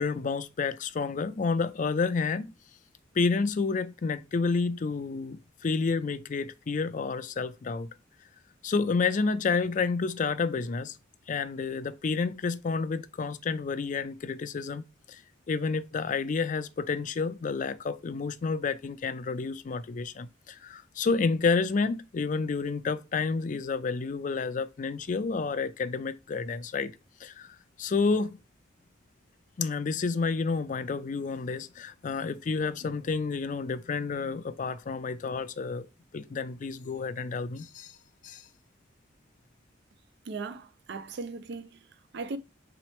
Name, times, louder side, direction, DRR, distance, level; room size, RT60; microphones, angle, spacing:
voice 1, 0.0-2.5 3.1-7.9 8.6-11.0 11.3-14.8 15.1-15.2 15.5-26.9 27.2-28.4 29.6-35.9 36.1-38.0 38.2-38.5, left 4 dB, 40° left, 0.4 m, -30 dB
voice 2, 40.2-42.4, right 3 dB, 60° right, 0.4 m, -38 dB
4.1 x 3.0 x 3.0 m
head